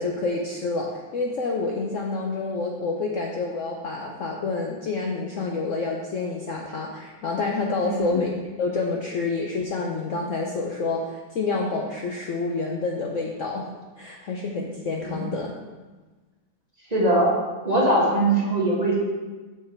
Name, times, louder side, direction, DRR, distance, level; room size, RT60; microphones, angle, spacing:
voice 1, 0.0-8.3 8.6-13.7 14.0-15.6, left 3 dB, 85° left, 0 dB, 0.6 m, -28 dB
voice 2, 7.8-8.2 15.0-15.3 16.9-17.3 17.6-19.0, right 1 dB, 25° right, -4 dB, 1.2 m, -21 dB
6.5 x 5.8 x 4.4 m, 1.3 s
omnidirectional pair, 2.2 m